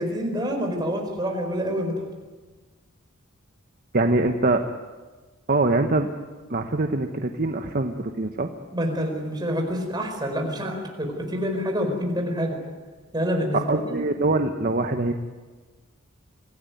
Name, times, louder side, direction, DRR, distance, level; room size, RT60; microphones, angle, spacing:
voice 1, 0.0-2.0 8.7-12.6 13.1-14.0, equal, 20° right, 3 dB, 4.8 m, -27 dB
voice 2, 3.9-4.6 5.5-6.1 6.5-8.5 13.5-15.1, right 2 dB, 45° right, 6 dB, 1.1 m, -23 dB
25.5 x 17.0 x 9.3 m, 1.3 s
head